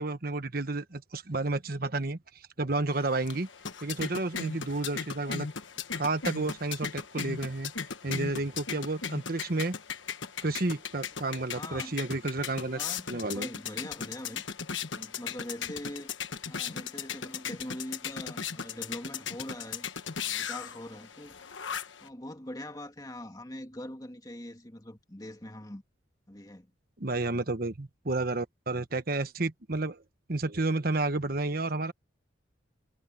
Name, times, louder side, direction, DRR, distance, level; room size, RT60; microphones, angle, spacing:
voice 1, 0.0-2.2 2.6-3.5 3.8-5.5 5.9-7.7 8.0-9.8 10.4-12.8 13.1-13.5 27.0-30.0 30.3-31.9, right 2 dB, 50° right, 1.2 m, -31 dB
sound 1, 2.9-22.1, left 7 dB, 80° left, 1.3 m, -38 dB
voice 2, 11.5-12.0 12.6-14.4 14.9-16.1 16.5-19.9 20.2-21.4 22.0-25.8 26.3-26.7, left 1 dB, 20° left, 2.3 m, -42 dB
head